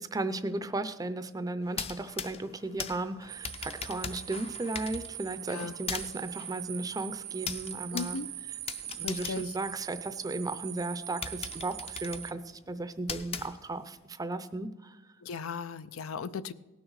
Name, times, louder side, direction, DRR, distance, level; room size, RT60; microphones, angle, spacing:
voice 1, 0.0-8.2 8.9-15.0, right 2 dB, 20° right, 12 dB, 0.5 m, -35 dB
sound 1, 1.6-10.4 10.8-10.9 11.2-14.0, left 6 dB, 30° left, 0.5 m, -41 dB
sound 2, 3.3-12.3, right 13 dB, 65° right, 0.6 m, -42 dB
voice 2, 7.9-8.3 9.0-9.5 15.2-16.5, left 5 dB, 85° left, 14 dB, 0.5 m, -37 dB
18.0 x 6.4 x 4.7 m, 1.1 s
head